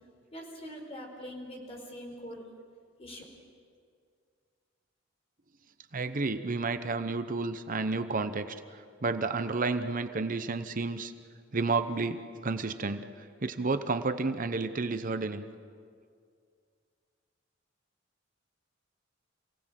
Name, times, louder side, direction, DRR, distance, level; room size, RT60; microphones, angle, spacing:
voice 1, 0.3-2.4 3.0-3.2, equal, 30° left, 1 dB, 4.8 m, -43 dB
voice 2, 5.9-11.1 11.5-13.1 13.4-15.4, right 3 dB, 45° right, 9 dB, 0.8 m, -31 dB
27.5 x 18.0 x 7.5 m, 2.2 s
head